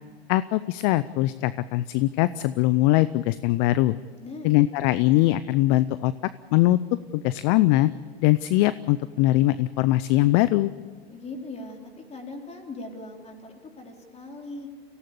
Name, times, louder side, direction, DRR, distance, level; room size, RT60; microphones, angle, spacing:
voice 1, 0.3-4.0 4.4-6.1 6.5-6.8 7.1-7.9 8.2-10.7, left 16 dB, 50° left, 16 dB, 0.6 m, -21 dB
voice 2, 4.2-4.6 11.1-14.7, left 2 dB, 20° left, 2 dB, 4.1 m, -40 dB
25.0 x 17.0 x 8.5 m, 1.5 s
hypercardioid pair, 100°, 31 cm